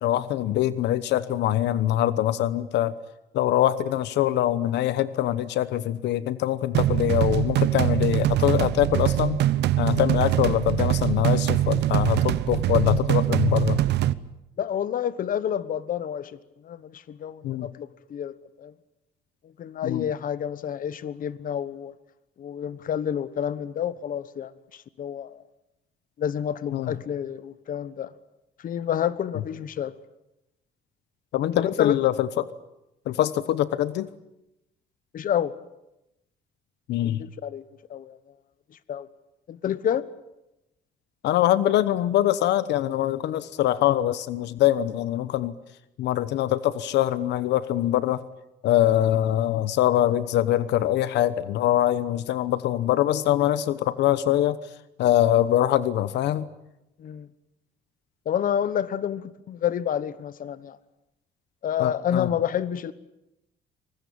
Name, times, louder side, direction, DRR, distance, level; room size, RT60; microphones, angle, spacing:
voice 1, 0.0-2.9 3.3-9.4 9.8-13.8 17.4-17.7 19.8-20.1 26.7-26.9 31.3-32.5 33.1-34.1 36.9-37.2 41.2-45.5 46.0-48.2 48.6-54.6 55.0-56.5 61.8-62.3, left 12 dB, 80° left, 1.0 m, -23 dB
sound 1, 6.7-14.1, right 13 dB, 80° right, 0.9 m, -23 dB
voice 2, 14.6-16.4 16.6-18.7 19.6-21.9 22.4-25.4 26.2-28.1 28.6-29.9 31.6-32.0 35.1-35.5 37.0-37.6 37.9-38.2 38.9-39.1 39.5-40.0 57.0-57.3 58.2-60.8 61.6-62.9, left 9 dB, 50° left, 1.2 m, -29 dB
24.5 x 20.0 x 8.7 m
cardioid pair, 120°, 18 cm